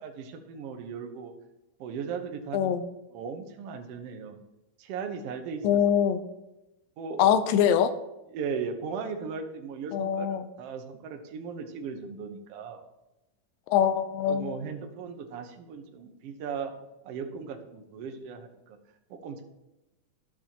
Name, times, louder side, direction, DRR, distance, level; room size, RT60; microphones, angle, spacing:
voice 1, 0.0-1.3 1.8-2.7 3.1-4.4 4.8-5.8 6.1-6.2 7.0-7.2 8.3-12.8 14.3-16.7 17.0-18.6 19.1-19.4, right 6 dB, 75° right, 4 dB, 1.4 m, -37 dB
voice 2, 2.5-2.8 5.6-6.2 7.2-7.9 9.9-10.5 13.7-14.5, left 9 dB, 85° left, 11 dB, 2.3 m, -23 dB
12.0 x 7.5 x 2.9 m, 0.96 s
omnidirectional pair, 4.0 m